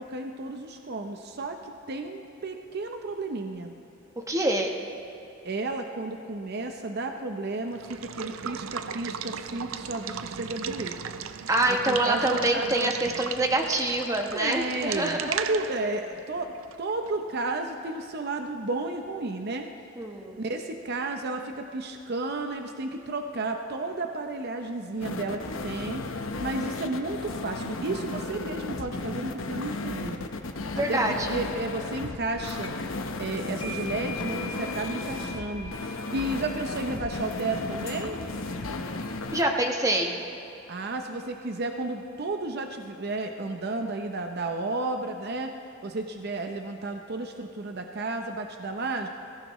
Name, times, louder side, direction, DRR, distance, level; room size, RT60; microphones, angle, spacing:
voice 1, 0.0-3.7 5.4-10.9 11.7-12.9 14.3-16.5 16.8-19.7 20.4-26.0 26.4-30.3 30.7-32.7 33.2-38.2 40.7-45.5 45.8-49.1, right 2 dB, 55° right, 5 dB, 0.7 m, -32 dB
voice 2, 4.2-4.7 11.5-15.3 20.0-20.4 30.8-31.3 39.3-40.2, right 1 dB, 15° right, 2 dB, 1.1 m, -26 dB
Water / Water tap faucet / Liquid, 7.7-17.3, right 7 dB, 90° right, 0.5 m, -37 dB
sound 1, 25.0-39.4, left 3 dB, 80° left, 0.9 m, -34 dB
sound 2, 32.6-32.9 33.2-40.5, left 2 dB, 25° left, 1.1 m, -43 dB
23.5 x 15.5 x 3.1 m, 2.7 s
head